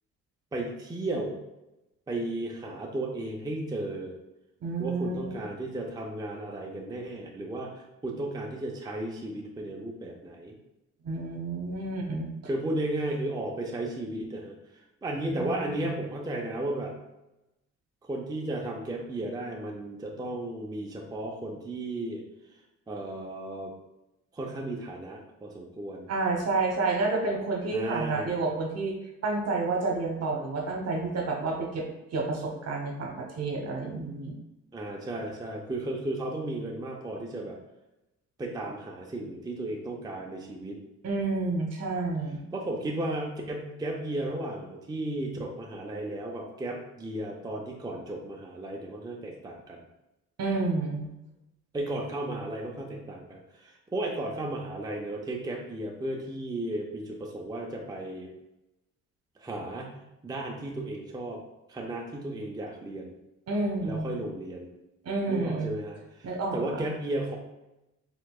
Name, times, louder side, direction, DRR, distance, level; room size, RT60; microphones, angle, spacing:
voice 1, 0.5-1.4 2.1-4.1 4.8-10.5 12.4-14.6 15.0-16.9 18.0-22.2 22.9-23.7 24.3-26.1 27.7-28.4 34.7-37.6 38.4-40.8 42.5-49.8 51.7-58.3 59.4-60.0 60.2-61.4 61.7-63.1 63.8-64.7 65.3-67.4, right 1 dB, 15° right, 0 dB, 0.5 m, -34 dB
voice 2, 4.6-5.3 11.0-12.3 15.3-15.8 26.1-28.9 29.2-31.8 32.1-34.4 41.0-42.4 50.4-51.1 63.5-64.1 65.0-65.7 66.2-66.9, right 3 dB, 55° right, 1 dB, 1.0 m, -30 dB
4.4 x 3.7 x 2.3 m, 0.95 s
cardioid pair, 90°, 30 cm